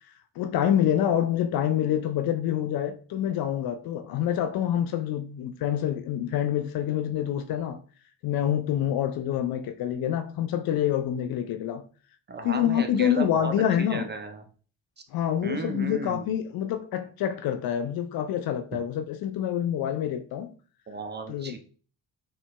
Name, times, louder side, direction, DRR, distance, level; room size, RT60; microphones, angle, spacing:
voice 1, 0.4-7.8 8.2-11.8 12.4-14.1 15.1-20.5 21.3-21.5, left 10 dB, 50° left, 0.5 m, -27 dB
voice 2, 12.3-14.4 15.4-16.3 20.9-21.6, right 3 dB, 25° right, 0.5 m, -35 dB
3.8 x 2.1 x 2.3 m
hypercardioid pair, 50°, 47 cm